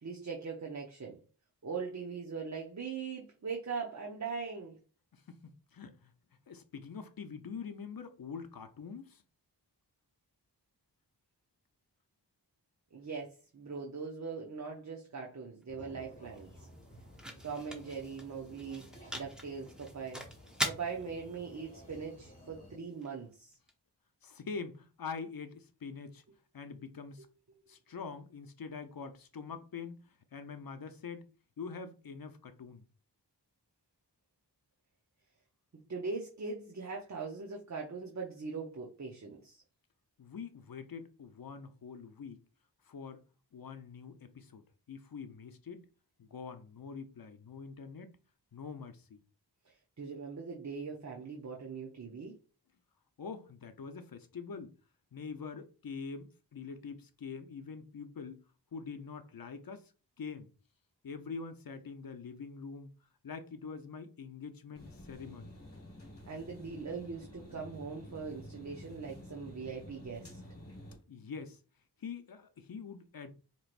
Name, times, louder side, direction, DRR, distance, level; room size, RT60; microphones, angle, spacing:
voice 1, 0.0-1.2 1.6-4.8 12.9-16.7 17.4-18.8 19.1-20.2 20.6-23.6 35.9-39.6 49.7-52.4 66.2-70.4, right 5 dB, 40° right, 0.8 m, -41 dB
voice 2, 5.1-6.1 6.5-9.2 24.2-26.2 26.5-27.3 27.7-31.3 31.6-32.9 40.2-42.4 42.8-43.2 43.5-45.9 46.2-48.2 48.5-49.2 53.2-54.8 55.1-59.9 60.2-60.5 61.0-62.9 63.2-65.6 70.5-70.6 71.1-71.6 72.0-73.3, left 5 dB, 55° left, 0.7 m, -45 dB
sound 1, 15.6-23.7, equal, ahead, 0.9 m, -44 dB
sound 2, 15.7-22.8, equal, 20° left, 1.7 m, -55 dB
sound 3, 64.7-71.0, left 1 dB, 35° left, 1.5 m, -50 dB
4.5 x 3.0 x 2.5 m
wide cardioid pair, 75°, 41 cm